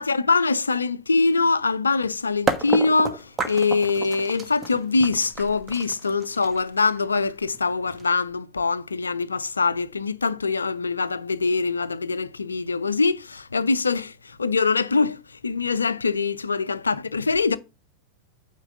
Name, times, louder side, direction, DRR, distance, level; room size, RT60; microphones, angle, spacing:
voice 1, 0.0-17.6, left 4 dB, 75° left, 0.5 m, -23 dB
sound 1, 2.0-2.1 2.5-8.3, right 4 dB, 15° right, 1.3 m, -31 dB
9.1 x 3.2 x 6.7 m
figure-of-eight pair, 90°, 0 cm